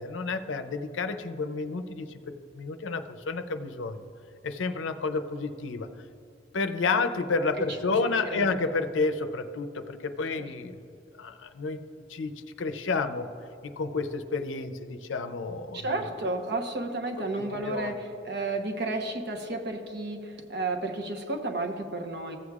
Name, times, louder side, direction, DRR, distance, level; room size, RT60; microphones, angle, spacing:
voice 1, 0.0-2.2 2.5-4.0 4.4-5.9 6.5-10.8 11.2-11.8 12.1-13.3 13.6-16.0 17.2-17.3 17.7-17.9, left 4 dB, 90° left, 9 dB, 0.6 m, -30 dB
voice 2, 8.0-8.6 10.3-10.5 15.7-22.4, right 2 dB, 60° right, 3 dB, 0.9 m, -32 dB
15.0 x 8.0 x 2.4 m, 2.7 s
head